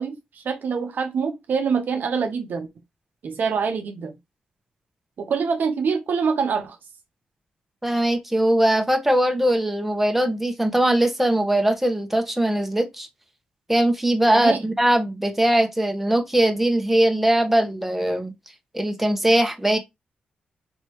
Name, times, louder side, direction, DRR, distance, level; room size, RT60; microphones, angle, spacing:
voice 1, 0.0-2.7 3.2-4.2 5.2-6.8 14.3-14.6, right 5 dB, 65° right, 0.8 m, -25 dB
voice 2, 7.8-13.1 13.7-18.3 18.7-19.8, right 1 dB, 5° right, 1.1 m, -21 dB
4.4 x 3.2 x 3.0 m
cardioid pair, 60°, 3 cm